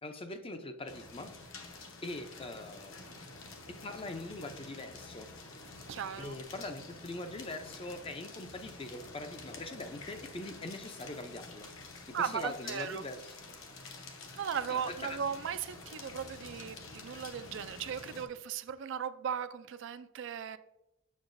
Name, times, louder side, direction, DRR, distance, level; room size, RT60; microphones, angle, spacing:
voice 1, 0.0-1.3 2.0-3.2 3.8-5.3 6.2-13.3 14.7-15.2, left 2 dB, 25° left, 0.5 m, -42 dB
sound 1, 0.9-18.3, left 3 dB, 60° left, 1.0 m, -49 dB
voice 2, 5.9-6.3 12.1-13.0 14.4-20.6, right 7 dB, 55° right, 0.3 m, -37 dB
7.2 x 6.9 x 2.6 m
head